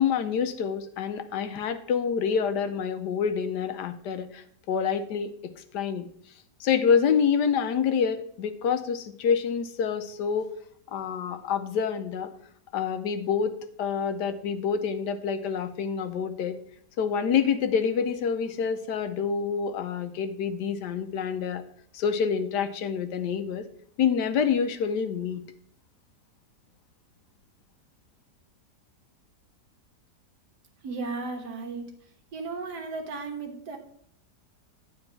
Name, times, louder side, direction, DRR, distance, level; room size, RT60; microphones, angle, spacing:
voice 1, 0.0-5.3 5.7-6.1 6.6-10.5 10.9-12.3 12.7-16.6 17.0-21.6 21.9-23.6 24.0-25.4, left 7 dB, 85° left, 9 dB, 1.4 m, -27 dB
voice 2, 30.8-31.9 32.3-33.8, right 4 dB, 80° right, 4 dB, 1.9 m, -35 dB
9.8 x 4.4 x 5.9 m, 0.65 s
omnidirectional pair, 1.7 m